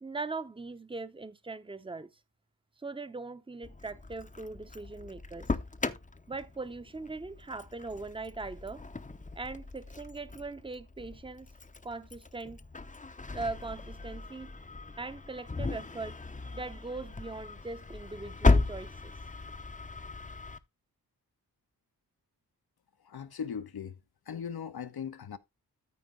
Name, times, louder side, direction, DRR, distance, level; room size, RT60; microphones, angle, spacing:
voice 1, 0.0-2.1 2.8-5.5 6.3-8.8 9.3-11.5 11.8-12.6 13.3-14.5 15.0-16.2 16.5-19.1, right 3 dB, 15° right, 0.8 m, -40 dB
Engine starting, 3.6-20.6, left 3 dB, 20° left, 0.7 m, -35 dB
voice 2, 23.0-24.0 24.3-25.4, left 7 dB, 75° left, 1.0 m, -39 dB
13.5 x 4.6 x 3.8 m
wide cardioid pair, 90°, 38 cm